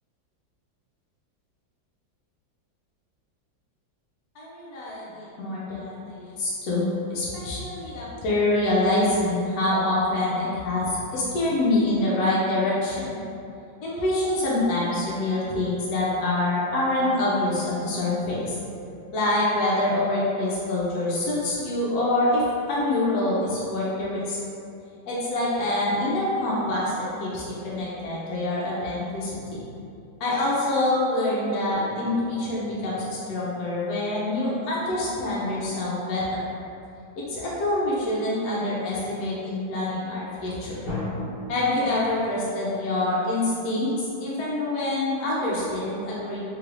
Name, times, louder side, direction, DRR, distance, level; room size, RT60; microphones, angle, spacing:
voice 1, 4.3-13.2 13.8-18.6 19.1-24.4 25.1-29.6 30.2-36.4 37.2-40.8 41.5-43.9 44.2-46.4, left 2 dB, 70° left, -7 dB, 0.9 m, -26 dB
sound 1, 31.7-33.8 40.8-41.5, left 2 dB, 50° left, 1.7 m, -36 dB
3.2 x 3.2 x 2.4 m, 2.5 s
omnidirectional pair, 2.1 m